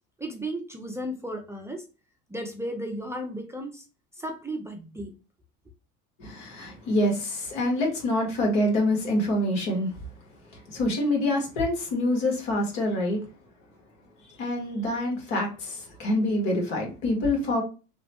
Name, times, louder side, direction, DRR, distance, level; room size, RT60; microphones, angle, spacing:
voice 1, 0.2-1.8 2.3-3.8 4.1-5.1, right 1 dB, 10° right, 0.3 m, -34 dB
voice 2, 6.2-10.1 10.4-13.2 14.3-17.6, left 1 dB, 80° left, 1.5 m, -26 dB
3.1 x 2.1 x 2.8 m
supercardioid pair, 110°, 35 cm